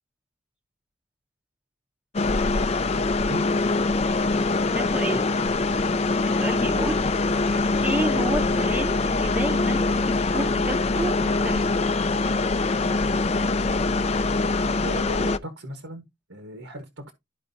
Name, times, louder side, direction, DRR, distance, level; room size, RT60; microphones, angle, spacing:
sound 1, 2.1-15.4, left 3 dB, 30° left, 0.5 m, -23 dB
voice 1, 4.6-5.3 6.2-7.0 7.4-11.8, right 1 dB, 5° right, 0.7 m, -30 dB
voice 2, 14.8-16.0 16.3-17.1, right 1 dB, 80° right, 1.4 m, -37 dB
13.0 x 4.8 x 2.7 m
head